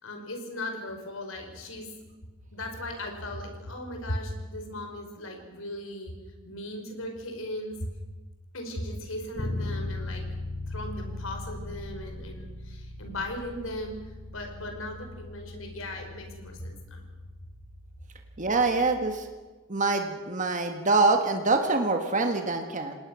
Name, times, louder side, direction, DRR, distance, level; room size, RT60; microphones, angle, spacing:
voice 1, 0.0-1.9 2.5-6.1 6.4-7.9 8.5-10.2 10.7-14.0 14.3-17.0, left 1 dB, 75° left, 4 dB, 5.0 m, -37 dB
Bass guitar, 9.4-19.2, left 2 dB, 50° left, 4.8 m, -39 dB
voice 2, 18.4-19.3 19.7-23.0, right 3 dB, 35° right, 5 dB, 1.7 m, -25 dB
28.0 x 19.5 x 6.4 m, 1.2 s
head